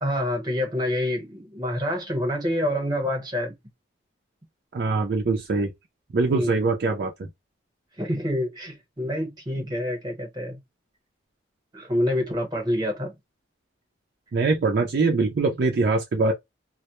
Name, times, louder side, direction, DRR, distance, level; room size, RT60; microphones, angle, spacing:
voice 1, 0.0-3.5 6.3-6.5 8.0-10.6 11.7-13.1, left 1 dB, 20° right, 0.9 m, -27 dB
voice 2, 4.7-5.7 6.1-7.3 14.3-16.3, right 3 dB, 55° right, 0.4 m, -23 dB
2.1 x 2.0 x 2.9 m
head